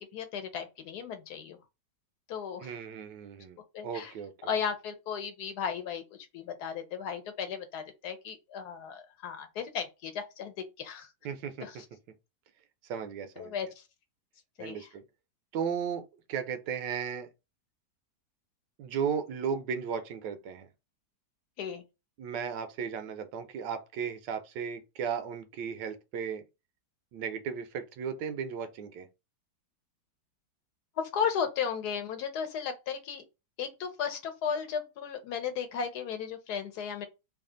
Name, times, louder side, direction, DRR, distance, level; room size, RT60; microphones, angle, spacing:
voice 1, 0.1-1.6 2.3-2.8 3.7-4.1 4.5-6.0 6.3-11.1 11.6-11.8 13.4-13.7 14.6-14.9 21.6-21.8 31.0-33.2 33.6-37.1, left 7 dB, 70° left, 1.2 m, -35 dB
voice 2, 2.6-3.6 3.8-4.3 11.2-11.7 12.9-13.5 14.6-15.0 15.5-16.0 16.3-17.3 18.8-20.7 22.2-26.4 27.1-29.1, right 7 dB, 85° right, 1.3 m, -35 dB
3.2 x 2.4 x 3.7 m
omnidirectional pair, 1.9 m